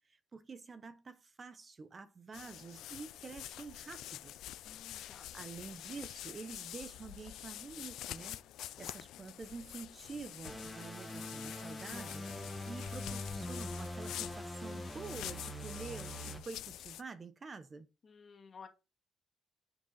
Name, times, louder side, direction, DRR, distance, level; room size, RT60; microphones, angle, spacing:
voice 1, 0.1-4.3 5.3-8.4 8.8-17.9, right 4 dB, 35° right, 1.0 m, -48 dB
sound 1, 2.3-17.0, left 13 dB, 85° left, 0.5 m, -47 dB
voice 2, 4.6-5.3 18.0-18.7, left 5 dB, 45° left, 2.1 m, -54 dB
sound 2, 10.4-16.4, left 1 dB, 5° left, 1.7 m, -43 dB
9.7 x 5.2 x 4.0 m
cardioid pair, 90°, 0 cm